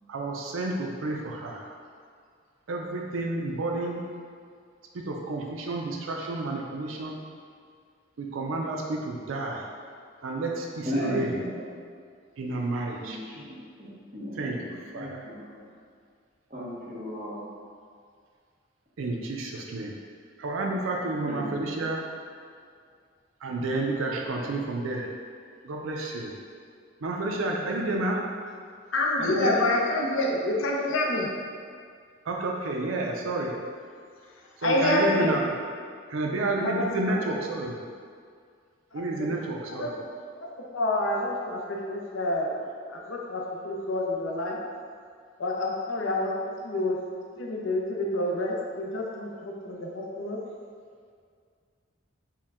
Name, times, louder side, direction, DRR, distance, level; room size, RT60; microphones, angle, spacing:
voice 1, 0.1-1.7 2.7-4.0 5.1-7.2 8.2-9.6 10.2-11.3 12.4-13.2 14.4-15.2 19.0-19.9 20.4-22.0 23.4-25.1 25.6-26.3 27.0-28.2 29.2-29.6 32.3-33.5 34.6-35.4 36.1-37.8 38.9-39.9, right 2 dB, 80° right, 0 dB, 0.5 m, -30 dB
voice 2, 10.8-11.7 13.0-15.6 16.5-17.4 21.2-21.8, equal, 35° right, -10 dB, 1.1 m, -35 dB
voice 3, 28.9-31.3 34.6-35.3 36.6-37.2 38.9-39.3 39.7-40.0 40.4-40.5 40.7-44.6 45.4-47.0 47.4-50.4, left 1 dB, 75° left, -1 dB, 0.6 m, -28 dB
4.4 x 2.2 x 3.6 m, 2.1 s
head